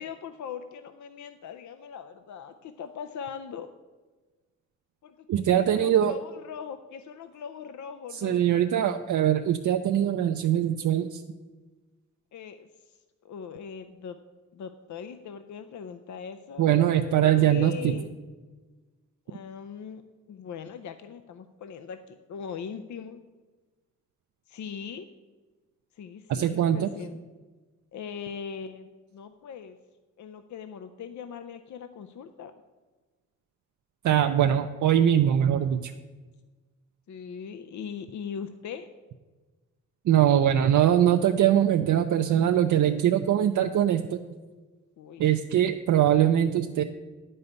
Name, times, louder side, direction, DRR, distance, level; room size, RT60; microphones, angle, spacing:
voice 1, 0.0-3.7 5.0-8.4 12.3-14.2 14.5-18.2 19.3-20.0 20.3-23.2 24.5-25.1 25.9-27.2 27.9-29.8 30.2-32.5 37.1-38.9 45.0-45.3, left 7 dB, 70° left, 9 dB, 0.6 m, -40 dB
voice 2, 5.3-6.1 8.1-11.2 16.6-17.9 26.3-26.9 34.0-35.9 40.1-44.2 45.2-46.8, right 10 dB, 75° right, 6 dB, 0.5 m, -22 dB
9.6 x 5.5 x 7.9 m, 1.3 s
cardioid pair, 105°, 30 cm